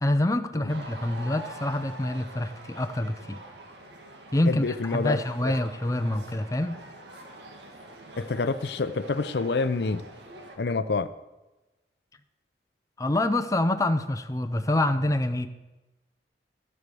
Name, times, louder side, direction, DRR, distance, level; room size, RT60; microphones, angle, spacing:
voice 1, 0.0-3.4 4.3-6.8 13.0-15.5, left 1 dB, 20° left, 9 dB, 0.5 m, -26 dB
sound 1, 0.7-10.6, right 1 dB, 80° right, 1.7 m, -45 dB
voice 2, 4.5-5.6 8.2-10.0 10.6-11.1, left 3 dB, 70° left, 13 dB, 0.5 m, -28 dB
12.0 x 8.0 x 6.9 m, 1.1 s
head